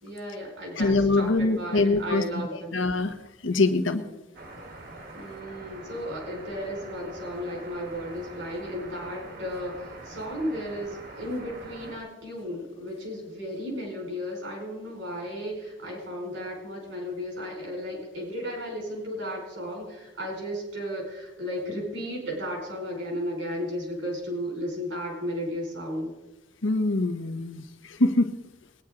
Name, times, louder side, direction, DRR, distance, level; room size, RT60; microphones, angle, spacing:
voice 1, 0.0-2.8 5.1-26.1, equal, 75° right, -1 dB, 4.8 m, -34 dB
voice 2, 0.8-2.2 2.7-3.2 3.4-4.0 26.6-28.3, left 2 dB, 85° left, 8 dB, 1.1 m, -24 dB
sound 1, 4.3-12.0, right 2 dB, 55° right, 1.6 m, -44 dB
20.5 x 9.8 x 3.9 m, 1.1 s
head